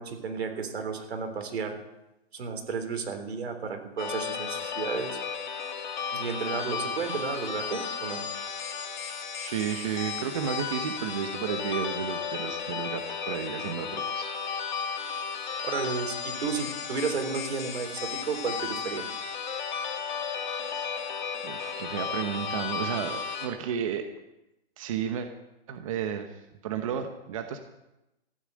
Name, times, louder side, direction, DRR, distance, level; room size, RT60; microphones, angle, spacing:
voice 1, 0.0-1.8 2.3-5.2 6.1-8.2 15.6-19.1, right 5 dB, 85° right, 5 dB, 3.7 m, -32 dB
sound 1, 4.0-23.5, left 6 dB, 50° left, 2.4 m, -34 dB
voice 2, 9.4-14.3 20.6-20.9 21.4-24.0 24.8-25.3 25.7-26.3 26.6-27.6, right 8 dB, 35° right, 6 dB, 1.0 m, -32 dB
15.0 x 9.9 x 7.7 m, 0.92 s
hypercardioid pair, 175°, 31 cm